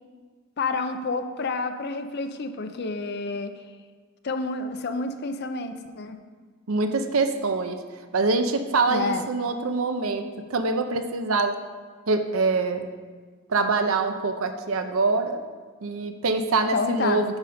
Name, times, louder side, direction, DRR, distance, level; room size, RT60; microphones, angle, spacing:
voice 1, 0.6-3.5 4.2-6.2 8.9-9.3 16.7-17.2, left 3 dB, 50° left, 8 dB, 0.5 m, -29 dB
voice 2, 6.7-7.8 8.1-11.6 12.1-12.9 13.5-15.4 15.8-17.4, right 3 dB, 85° right, 7 dB, 0.7 m, -24 dB
9.0 x 5.1 x 5.0 m, 1.5 s
head